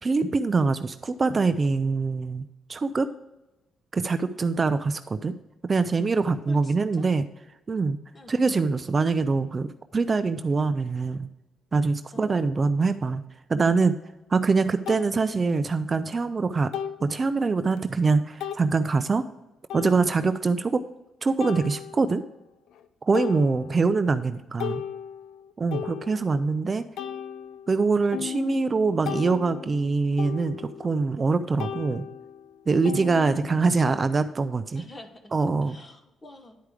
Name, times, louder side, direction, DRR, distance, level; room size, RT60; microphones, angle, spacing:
voice 1, 0.0-2.4 2.7-3.1 3.9-5.3 5.7-7.3 7.7-8.0 8.3-9.7 9.9-11.3 11.7-13.2 13.5-13.9 14.3-16.7 17.0-19.3 19.7-20.8 21.2-22.2 23.1-24.8 25.6-26.9 27.7-32.0 32.7-34.8 35.3-35.8, right 4 dB, 35° right, 11 dB, 0.4 m, -24 dB
voice 2, 6.5-7.1 8.1-8.4 12.1-12.3 34.7-35.3 35.6-36.6, left 1 dB, 25° left, 6 dB, 1.1 m, -47 dB
sound 1, 14.0-14.1 14.9-15.1 16.7-17.1 17.7-17.8 18.4-18.7 19.7-20.3 21.4-22.2 22.7-22.8 23.1-24.0 24.3-26.5 27.0-31.3 31.6-33.9, left 9 dB, 80° left, 0.5 m, -36 dB
10.5 x 4.7 x 4.8 m, 1.0 s
cardioid pair, 90°, 0 cm